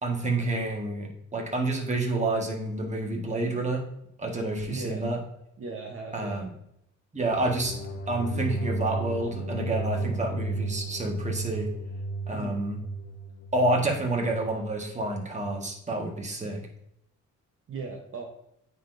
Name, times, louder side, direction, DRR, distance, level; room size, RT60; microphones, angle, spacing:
voice 1, 0.0-3.8 4.2-5.2 6.1-6.5 7.1-7.7 8.1-11.7 12.3-12.8 13.5-16.7, right 2 dB, 25° right, 0 dB, 1.6 m, -29 dB
voice 2, 4.7-5.0 5.6-6.4 12.3-12.6 17.7-18.2, right 4 dB, 45° right, 1 dB, 1.0 m, -37 dB
sound 1, 7.3-14.6, right 2 dB, 40° left, 0.9 m, -34 dB
9.2 x 4.1 x 2.6 m, 0.76 s
cardioid pair, 90°, 30 cm